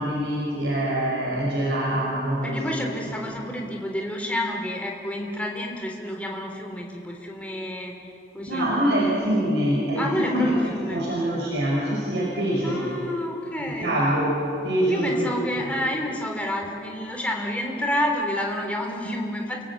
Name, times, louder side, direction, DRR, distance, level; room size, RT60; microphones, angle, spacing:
voice 1, 0.0-2.7 8.5-10.6 10.9-12.8 13.6-15.3, right 1 dB, 80° right, -4 dB, 5.3 m, -24 dB
voice 2, 2.4-7.9 8.3-8.8 10.0-11.0 12.6-14.0 14.9-19.6, left 1 dB, 10° left, 1 dB, 3.3 m, -29 dB
29.5 x 18.0 x 8.5 m, 2.6 s
head